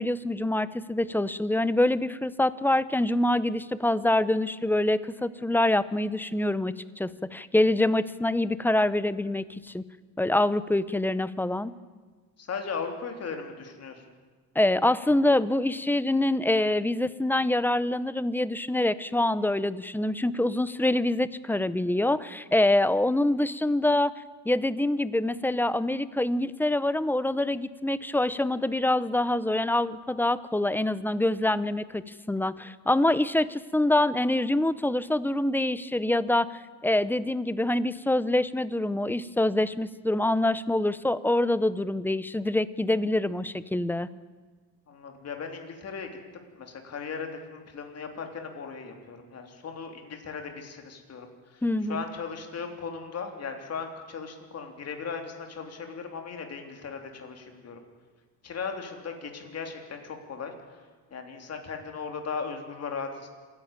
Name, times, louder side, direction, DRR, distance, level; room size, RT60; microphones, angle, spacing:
voice 1, 0.0-9.4 9.7-9.8 10.2-11.7 14.6-24.1 24.4-36.5 36.8-44.1 51.6-52.0, left 1 dB, 5° left, 16 dB, 0.6 m, -25 dB
voice 2, 12.4-14.0 44.9-46.1 46.5-51.6 51.9-57.8 58.4-60.5 61.1-63.3, left 5 dB, 45° left, 4 dB, 3.3 m, -37 dB
27.0 x 11.0 x 8.8 m, 1.4 s
cardioid pair, 120°, 35 cm